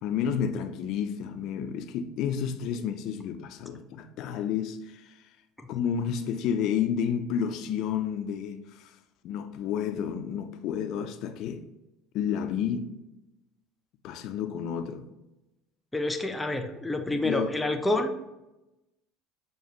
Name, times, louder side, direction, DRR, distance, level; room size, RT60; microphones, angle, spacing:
voice 1, 0.0-5.2 5.7-8.9 9.2-11.6 12.1-12.9 14.0-15.1 17.2-17.5, left 8 dB, 60° left, 8 dB, 0.4 m, -30 dB
voice 2, 15.9-18.2, left 2 dB, 10° left, 6 dB, 0.6 m, -28 dB
6.5 x 2.3 x 3.0 m, 0.96 s
hypercardioid pair, 65°, 0 cm